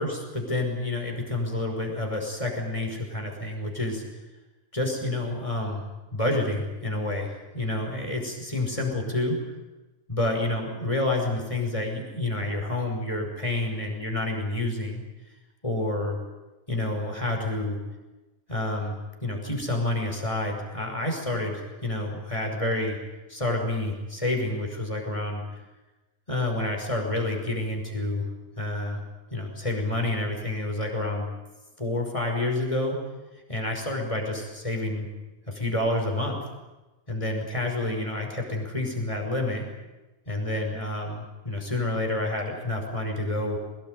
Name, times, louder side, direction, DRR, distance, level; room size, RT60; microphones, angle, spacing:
voice 1, 0.0-4.0 4.7-5.8 6.1-9.4 10.1-15.0 15.6-16.2 16.7-17.8 18.5-23.0 23.3-25.4 26.3-28.2 28.6-29.0 29.3-31.2 31.8-33.0 33.5-35.1 35.5-36.4 37.1-39.6 40.3-43.6, left 2 dB, 25° left, 2 dB, 5.7 m, -29 dB
23.0 x 20.5 x 9.3 m, 1.1 s
omnidirectional pair, 1.4 m